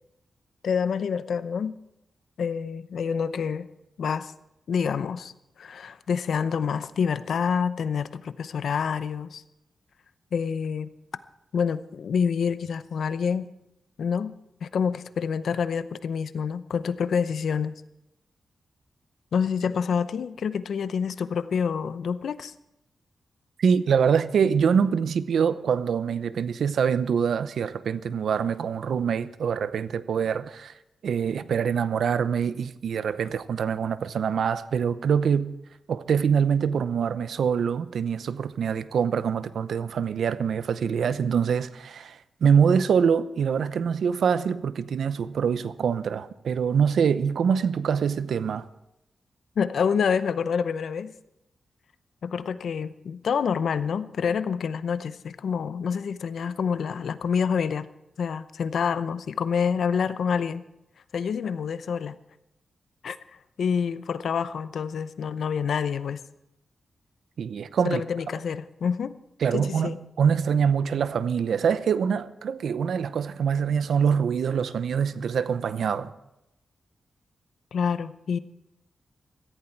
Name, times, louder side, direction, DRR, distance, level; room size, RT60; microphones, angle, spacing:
voice 1, 0.6-1.8 2.4-3.7 4.0-4.3 4.7-5.3 5.6-9.4 10.3-10.9 11.5-13.5 14.0-14.3 14.6-17.8 19.3-22.5 49.6-51.1 52.2-57.9 58.2-60.6 61.1-62.2 63.0-63.2 63.6-66.2 67.8-69.1 69.5-70.0 77.7-78.4, left 6 dB, 80° left, 0.7 m, -27 dB
voice 2, 23.6-30.7 31.0-35.5 35.9-48.7 67.4-68.0 69.4-76.1, right 7 dB, 85° right, 0.7 m, -24 dB
17.0 x 14.5 x 4.6 m
wide cardioid pair, 100°, 0 cm